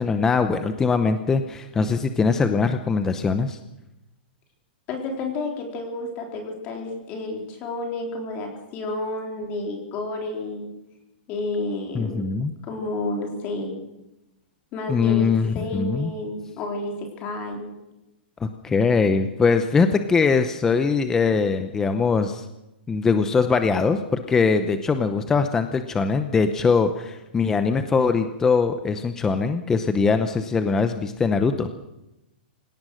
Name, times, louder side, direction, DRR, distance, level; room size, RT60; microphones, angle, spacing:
voice 1, 0.0-3.6 11.9-12.5 14.9-16.1 18.4-22.4 22.9-31.7, left 5 dB, 10° left, 8 dB, 0.8 m, -22 dB
voice 2, 4.9-10.7 11.3-12.3 12.6-13.7 14.7-17.7, left 2 dB, 25° left, 2 dB, 3.9 m, -30 dB
26.0 x 17.5 x 6.4 m, 0.92 s
hypercardioid pair, 170°, 6 cm